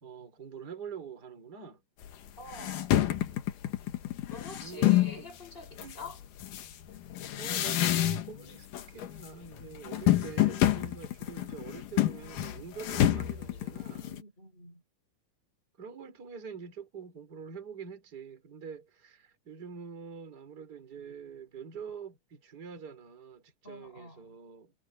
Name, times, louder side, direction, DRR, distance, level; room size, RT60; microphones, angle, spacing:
voice 1, 0.0-1.8 4.6-5.3 5.8-6.0 7.4-14.2 15.8-24.7, right 6 dB, 30° right, 4.0 m, -45 dB
sound 1, 2.0-2.1 2.5-5.2 5.8-8.5 8.7-9.3 9.5-14.2, left 13 dB, 80° left, 3.0 m, -28 dB
voice 2, 2.4-2.9 4.3-6.2 14.0-14.8 23.6-24.4, left 2 dB, 15° left, 4.7 m, -46 dB
omnidirectional pair, 3.7 m